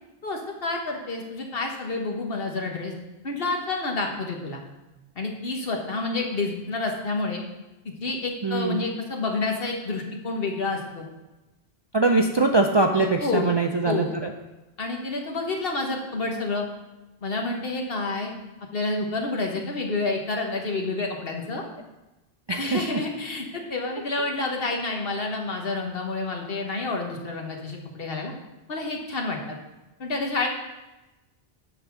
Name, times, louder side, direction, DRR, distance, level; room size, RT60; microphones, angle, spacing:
voice 1, 0.2-2.9 3.2-4.6 5.2-7.4 7.8-11.1 12.9-13.5 13.8-14.2 14.8-16.7 17.2-18.3 18.7-21.6 22.6-28.3 28.7-29.4 30.0-30.5, left 3 dB, 65° left, 1 dB, 1.4 m, -29 dB
voice 2, 8.4-8.9 11.9-14.3 22.5-23.0, right 3 dB, 40° right, 3 dB, 0.4 m, -22 dB
10.0 x 4.1 x 6.1 m, 1.1 s
omnidirectional pair, 1.1 m